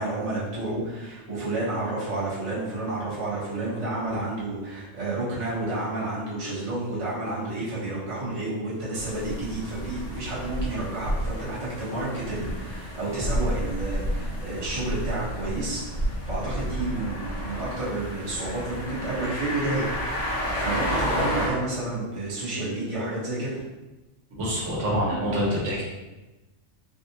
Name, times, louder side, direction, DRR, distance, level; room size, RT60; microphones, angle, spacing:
voice 1, 0.0-15.8 16.2-19.9 20.5-23.6, right 2 dB, 30° right, -9 dB, 1.0 m, -30 dB
sound 1, 8.9-21.5, equal, 85° left, 1.0 m, -31 dB
voice 2, 24.4-25.8, equal, 80° right, -5 dB, 1.2 m, -26 dB
3.5 x 2.4 x 2.8 m, 1.1 s
omnidirectional pair, 1.2 m